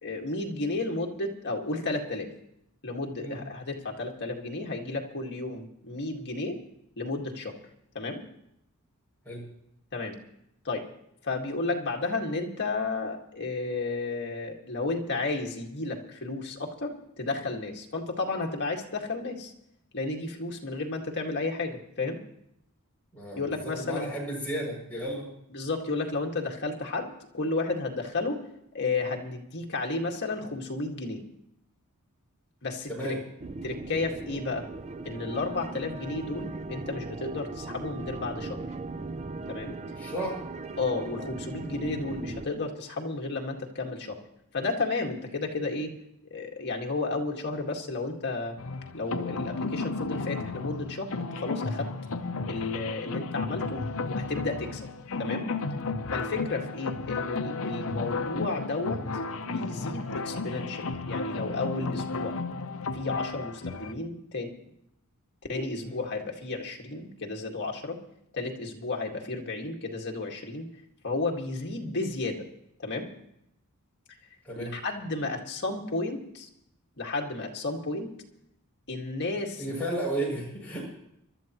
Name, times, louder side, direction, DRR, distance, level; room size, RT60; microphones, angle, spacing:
voice 1, 0.0-2.3 2.8-6.6 7.0-7.6 7.9-8.2 9.9-10.2 10.6-10.9 11.2-19.5 19.9-22.2 23.3-24.1 25.5-28.4 28.7-31.2 32.6-33.2 33.6-34.7 35.1-38.6 39.5-39.8 40.8-44.2 44.5-45.9 46.3-48.6 48.9-51.9 52.4-53.8 54.1-54.8 55.2-55.5 56.1-59.0 59.4-62.4 62.9-64.5 65.5-68.0 68.3-70.7 71.0-72.5 72.8-73.1 74.6-76.5 77.0-78.1 78.9-79.8, left 3 dB, 50° left, 1 dB, 1.9 m, -32 dB
voice 2, 23.1-25.3 32.9-33.2 40.0-40.4 65.8-66.0 74.4-74.7 79.6-80.8, right 1 dB, 10° left, -5 dB, 6.7 m, -33 dB
sound 1, 33.4-42.5, right 3 dB, 30° right, 0.5 m, -38 dB
sound 2, 48.6-63.9, left 3 dB, 70° left, 0.8 m, -33 dB
25.0 x 12.5 x 3.1 m, 0.77 s
head